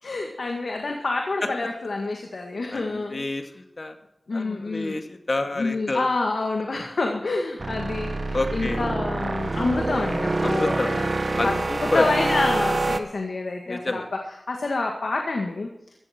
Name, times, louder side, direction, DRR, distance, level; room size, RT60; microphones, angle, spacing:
voice 1, 0.0-3.3 4.3-4.9 5.6-11.1 11.4-14.0 14.5-15.7, left 3 dB, 85° left, 2 dB, 1.9 m, -27 dB
voice 2, 2.7-4.0 4.3-6.0 8.3-8.8 10.4-10.9 11.4-12.1 13.7-14.1, left 2 dB, 55° left, 5 dB, 2.1 m, -28 dB
sound 1, 7.6-13.0, right 2 dB, 55° right, 1.1 m, -26 dB
16.0 x 13.5 x 4.5 m, 0.84 s
wide cardioid pair, 45°, 0 cm